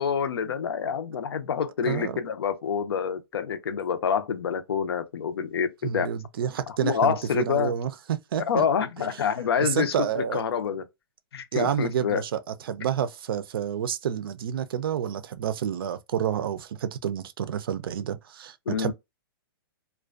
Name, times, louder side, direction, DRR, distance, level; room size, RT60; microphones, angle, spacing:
voice 1, 0.0-6.1 6.8-7.7 8.5-10.8 11.3-12.2 18.7-18.9, left 7 dB, 85° left, 0.5 m, -27 dB
voice 2, 1.8-2.2 5.8-8.6 9.0-9.1 9.6-10.4 11.5-12.4 12.7-18.9, right 9 dB, 65° right, 0.4 m, -29 dB
2.4 x 2.2 x 2.3 m
hypercardioid pair, 160°, 13 cm